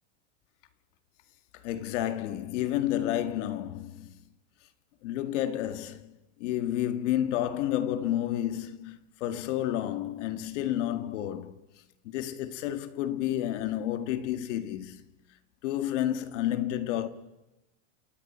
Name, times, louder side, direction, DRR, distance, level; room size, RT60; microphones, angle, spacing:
voice 1, 1.5-4.1 5.0-11.6 12.0-15.0 15.6-17.1, left 12 dB, 75° left, 1.8 m, -30 dB
29.0 x 29.0 x 4.4 m
supercardioid pair, 165°, 37 cm